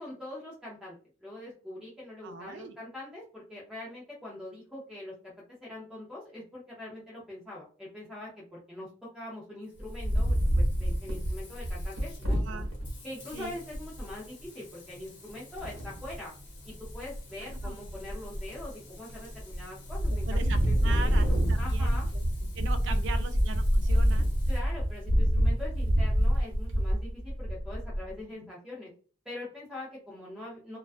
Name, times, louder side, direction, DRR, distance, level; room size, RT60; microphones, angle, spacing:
voice 1, 0.0-5.1 5.6-8.9 9.1-12.6 13.0-16.3 16.6-22.1 23.1-23.2 24.5-28.9 29.3-30.8, left 1 dB, 5° right, -7 dB, 0.5 m, -43 dB
voice 2, 2.2-2.7 12.4-12.7 13.3-13.6 17.4-17.8 20.1-22.2 22.5-24.3 28.0-28.5, right 4 dB, 60° right, 9 dB, 0.3 m, -41 dB
Frying (food), 9.6-24.6, left 2 dB, 55° left, 0.9 m, -52 dB
Wind, 9.8-12.9 13.4-13.5 13.7-14.1 15.6-16.2 16.7-17.2 17.5-18.7 19.1-19.6 19.9-28.1, equal, 80° right, 0.8 m, -27 dB
2.3 x 2.3 x 2.4 m, 0.40 s
head